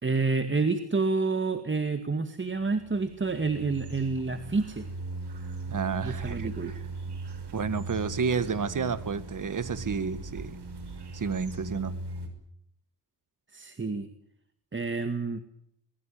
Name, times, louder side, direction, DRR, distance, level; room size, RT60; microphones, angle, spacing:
voice 1, 0.0-4.9 6.0-6.7 13.5-14.1 14.7-15.4, right 4 dB, 25° right, 9 dB, 2.0 m, -28 dB
sound 1, 2.6-12.3, right 3 dB, 65° right, 5.9 m, -39 dB
voice 2, 5.7-6.5 7.5-10.6 11.1-12.0, right 5 dB, 45° right, 13 dB, 2.1 m, -30 dB
23.0 x 21.5 x 8.7 m, 0.74 s
cardioid pair, 95°, 43 cm